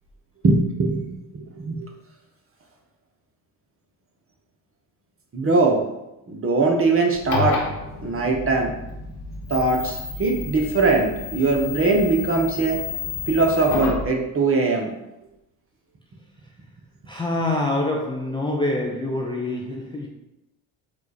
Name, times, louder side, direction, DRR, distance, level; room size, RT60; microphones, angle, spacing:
voice 1, 0.4-1.9 5.3-5.8 6.3-7.6 8.0-8.7 9.5-12.8 13.3-14.9, right 3 dB, 30° right, 1.0 m, -21 dB
sound 1, 7.1-14.1, left 5 dB, 55° left, 1.1 m, -31 dB
voice 2, 17.1-20.1, left 2 dB, 10° left, 0.5 m, -25 dB
4.2 x 2.5 x 4.1 m
hypercardioid pair, 60°, 47 cm